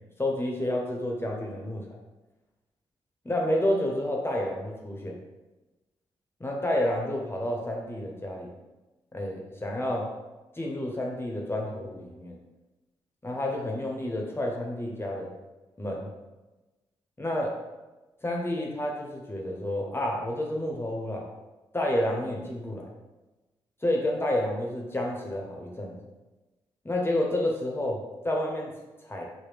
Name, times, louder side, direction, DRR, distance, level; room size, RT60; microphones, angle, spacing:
voice 1, 0.2-1.9 3.2-5.2 6.4-8.5 9.1-10.1 10.5-12.4 13.2-15.3 15.8-16.1 17.2-17.6 18.2-21.3 21.7-22.9 23.8-26.0 26.8-29.2, left 1 dB, 20° left, -1 dB, 0.7 m, -30 dB
3.1 x 2.1 x 3.4 m, 1.1 s
supercardioid pair, 40°, 11 cm